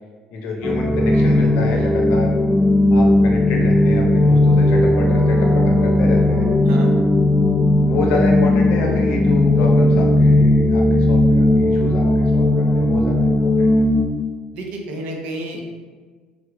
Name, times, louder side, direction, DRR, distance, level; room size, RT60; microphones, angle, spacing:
voice 1, 0.3-2.4 2.9-6.5 7.8-13.7, left 3 dB, 70° left, 0 dB, 0.7 m, -27 dB
sound 1, 0.6-14.0, left 1 dB, ahead, 0.3 m, -16 dB
voice 2, 14.5-15.8, right 1 dB, 60° right, 1 dB, 0.5 m, -30 dB
3.5 x 2.1 x 3.3 m, 1.5 s
cardioid pair, 170°, 3 cm